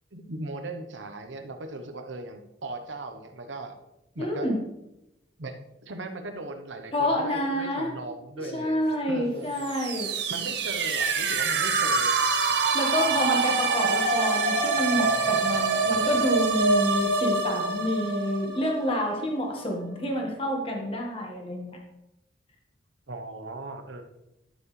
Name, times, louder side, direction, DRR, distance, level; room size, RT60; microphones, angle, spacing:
voice 1, 0.1-3.7 4.1-4.5 5.4-8.8 9.1-9.5 10.3-12.2 23.1-24.0, right 2 dB, 85° right, 7 dB, 1.0 m, -38 dB
voice 2, 4.2-4.6 6.9-7.9 8.4-10.1 12.7-21.8, left 1 dB, 30° left, 1 dB, 1.5 m, -28 dB
sound 1, 9.6-19.3, right 4 dB, 60° right, 0.9 m, -25 dB
11.5 x 7.2 x 3.3 m, 0.90 s
head